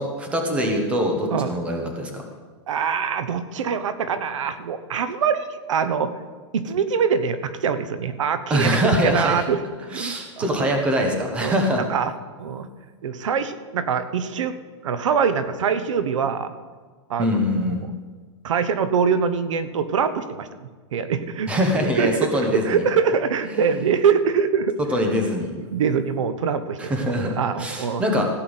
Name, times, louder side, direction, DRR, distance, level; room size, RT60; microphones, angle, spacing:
voice 1, 0.0-2.2 8.5-9.4 9.9-11.8 17.2-17.8 21.5-22.9 23.5-23.8 24.9-25.5 26.8-28.3, equal, 5° right, 3 dB, 1.2 m, -23 dB
voice 2, 2.7-6.2 6.5-9.6 9.9-10.5 11.4-12.1 12.4-12.7 13.0-14.6 14.8-16.5 17.1-17.7 18.4-21.5 21.8-24.7 25.7-28.0, right 6 dB, 85° right, 11 dB, 1.0 m, -24 dB
15.5 x 6.1 x 8.0 m, 1.5 s
supercardioid pair, 175°, 16 cm